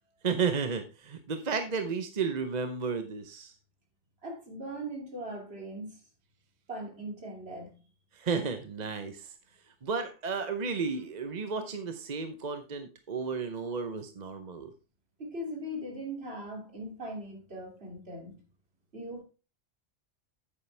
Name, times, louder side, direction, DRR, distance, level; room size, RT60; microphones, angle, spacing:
voice 1, 0.2-3.5 8.2-9.3 9.8-14.7, right 5 dB, 40° right, 0.9 m, -33 dB
voice 2, 4.2-6.0 6.7-7.8 15.2-18.4 18.9-19.2, right 1 dB, 60° right, 3.1 m, -40 dB
9.2 x 8.7 x 3.3 m
omnidirectional pair, 1.2 m